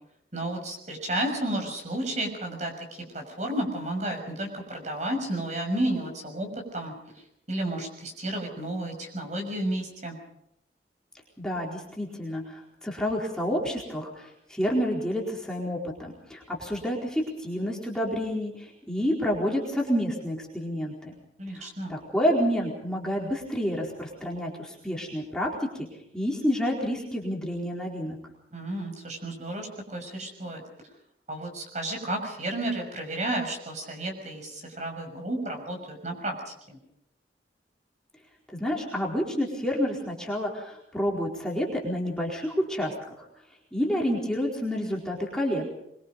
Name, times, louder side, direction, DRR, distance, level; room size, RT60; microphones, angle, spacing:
voice 1, 0.3-6.9 7.5-10.2 21.4-21.9 28.5-30.6 31.3-36.8, right 1 dB, 40° right, 3 dB, 6.5 m, -32 dB
voice 2, 11.4-21.1 21.5-25.7 26.1-28.2 38.5-43.3 43.7-45.6, equal, 5° left, -3 dB, 4.4 m, -29 dB
24.0 x 23.5 x 5.4 m, 0.77 s
head